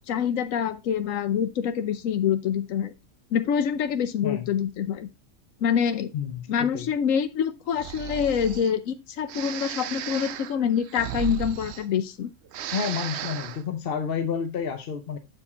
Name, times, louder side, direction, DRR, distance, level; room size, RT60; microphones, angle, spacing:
voice 1, 0.1-2.9 3.3-5.1 5.6-6.1 6.5-12.3, left 8 dB, 90° left, 11 dB, 1.1 m, -26 dB
voice 2, 6.1-6.9 12.7-15.2, left 7 dB, 50° left, 8 dB, 0.9 m, -30 dB
Breathing, 7.7-8.7 9.3-12.2 12.5-13.6, right 11 dB, 65° right, 0.8 m, -35 dB
7.7 x 4.7 x 4.1 m, 0.25 s
omnidirectional pair, 1.3 m